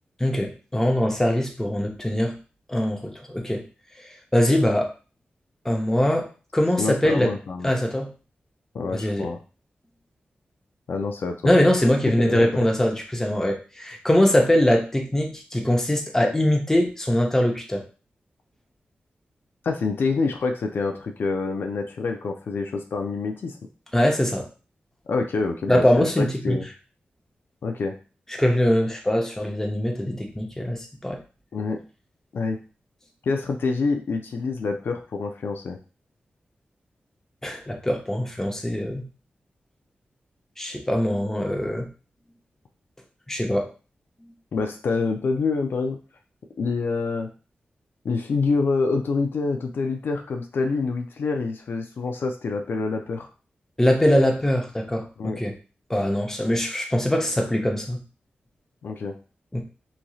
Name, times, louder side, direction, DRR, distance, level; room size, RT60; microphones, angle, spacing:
voice 1, 0.2-2.4 2.7-3.6 4.3-4.9 5.6-6.3 6.5-7.3 7.6-8.1 8.9-9.3 11.4-17.8 23.9-24.4 25.7-26.6 28.4-31.2 37.4-39.0 40.6-41.9 43.3-43.7 53.8-55.5 55.9-58.0 59.5-59.6, left 1 dB, 10° left, 2 dB, 0.7 m, -22 dB
voice 2, 6.8-7.7 8.7-9.4 10.9-11.9 12.2-12.5 19.6-23.6 25.1-26.7 27.6-27.9 31.5-31.8 32.3-32.6 33.2-35.8 44.5-46.0 46.6-47.3 48.0-53.3 55.2-55.4 58.8-59.1, left 4 dB, 75° left, 4 dB, 0.4 m, -26 dB
3.0 x 2.6 x 2.3 m, 0.34 s
cardioid pair, 70°, 4 cm